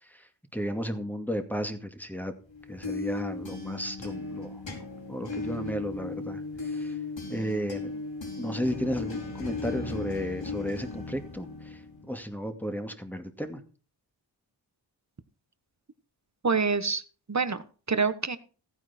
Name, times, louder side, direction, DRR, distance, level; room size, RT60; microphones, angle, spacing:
voice 1, 0.0-2.3 2.7-4.6 5.1-7.0 7.3-7.9 8.4-11.8 12.1-13.6, equal, 5° left, 6 dB, 2.1 m, -34 dB
sound 1, 2.5-12.2, left 3 dB, 80° left, 4.5 m, -36 dB
voice 2, 16.4-17.0 17.3-18.4, right 5 dB, 40° right, 12 dB, 1.3 m, -26 dB
15.0 x 9.3 x 4.4 m, 0.38 s
wide cardioid pair, 60°, 45 cm